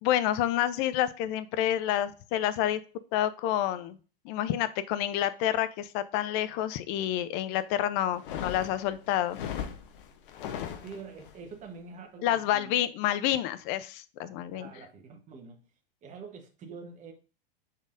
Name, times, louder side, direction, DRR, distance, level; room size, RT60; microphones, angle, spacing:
voice 1, 0.0-2.8 3.1-4.0 4.2-9.4 12.2-14.7, left 12 dB, 35° left, 0.4 m, -28 dB
sound 1, 8.1-11.3, left 9 dB, 65° left, 0.8 m, -38 dB
voice 2, 10.8-12.8 14.2-15.6 16.0-17.1, right 5 dB, 25° right, 1.0 m, -46 dB
5.1 x 4.1 x 2.5 m
hypercardioid pair, 120°, 30 cm